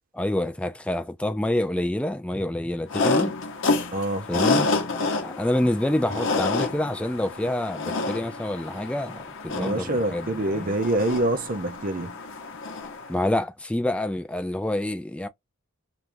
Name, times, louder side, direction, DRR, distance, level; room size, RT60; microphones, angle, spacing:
voice 1, 0.1-3.3 4.3-4.7 5.2-10.8 13.1-15.3, left 1 dB, 5° left, 0.3 m, -27 dB
sound 1, 2.9-13.2, left 3 dB, 60° left, 0.7 m, -29 dB
voice 2, 3.9-4.3 9.5-12.2, right 1 dB, 40° right, 0.6 m, -26 dB
3.2 x 2.3 x 2.6 m
head